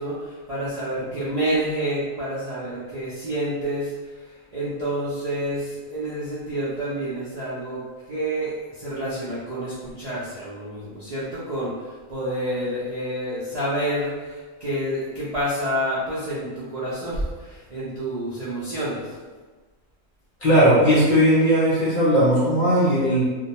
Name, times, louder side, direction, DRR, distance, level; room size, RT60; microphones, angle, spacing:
voice 1, 0.0-19.2, right 1 dB, 50° right, -11 dB, 0.5 m, -28 dB
voice 2, 20.4-23.2, equal, 55° left, -8 dB, 0.6 m, -18 dB
2.2 x 2.1 x 2.8 m, 1.4 s
omnidirectional pair, 1.4 m